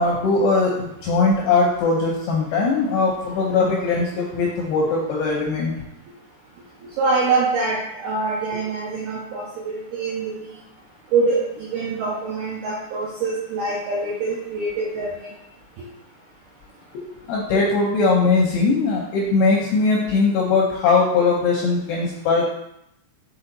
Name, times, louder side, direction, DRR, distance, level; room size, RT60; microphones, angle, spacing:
voice 1, 0.0-5.7 16.9-22.5, left 3 dB, 80° left, -2 dB, 2.4 m, -20 dB
voice 2, 7.0-10.3 11.1-15.3, right 3 dB, 80° right, -5 dB, 2.3 m, -24 dB
6.9 x 4.2 x 4.0 m, 0.82 s
omnidirectional pair, 5.7 m